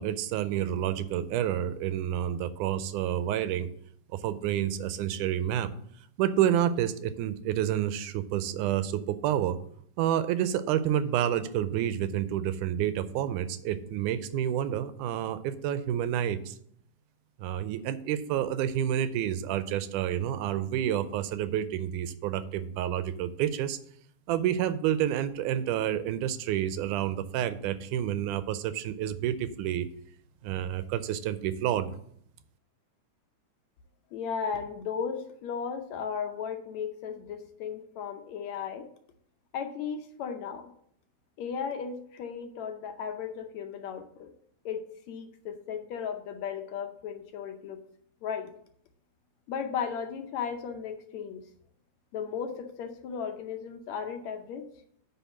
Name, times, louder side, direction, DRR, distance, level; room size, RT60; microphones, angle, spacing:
voice 1, 0.0-3.7 4.1-5.7 6.2-9.6 10.0-16.6 17.4-23.8 24.3-29.9 30.4-31.9, right 10 dB, 85° right, 12 dB, 2.1 m, -29 dB
voice 2, 34.1-38.9 39.5-40.7 41.4-44.3 44.7-44.8 45.1-47.8 48.2-48.5 49.5-51.4 52.1-54.7, left 7 dB, 70° left, 5 dB, 1.9 m, -35 dB
9.3 x 4.0 x 7.1 m, 0.67 s
omnidirectional pair, 3.6 m